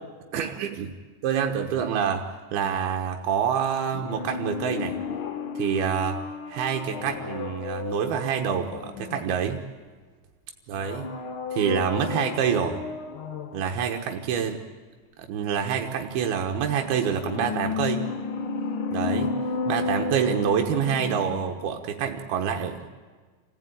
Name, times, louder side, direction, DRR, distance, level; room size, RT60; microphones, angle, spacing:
voice 1, 0.3-0.9 1.2-2.2 2.5-5.0 5.6-6.2 6.5-9.6 10.7-11.1 11.5-12.8 13.5-14.6 15.3-18.0 18.9-19.3 19.7-22.9, right 8 dB, 85° right, 3 dB, 3.1 m, -26 dB
sound 1, 3.9-9.7 10.7-13.7 16.5-21.7 22.0-22.1, left 5 dB, 85° left, 1.1 m, -32 dB
27.0 x 15.0 x 9.2 m, 1.4 s
omnidirectional pair, 4.3 m